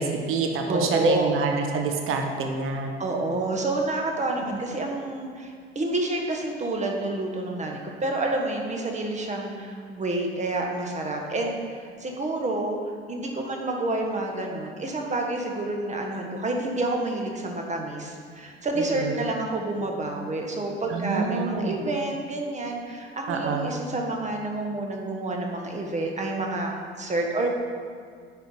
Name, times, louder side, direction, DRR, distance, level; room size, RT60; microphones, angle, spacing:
voice 1, 0.0-2.9 4.4-4.6 18.7-19.2 20.9-21.8 23.3-23.7, right 4 dB, 45° right, 3 dB, 1.1 m, -27 dB
voice 2, 0.7-1.4 3.0-12.8 13.1-27.5, right 2 dB, 25° right, 1 dB, 1.4 m, -28 dB
9.1 x 4.7 x 5.5 m, 2.1 s
figure-of-eight pair, 60°, 31 cm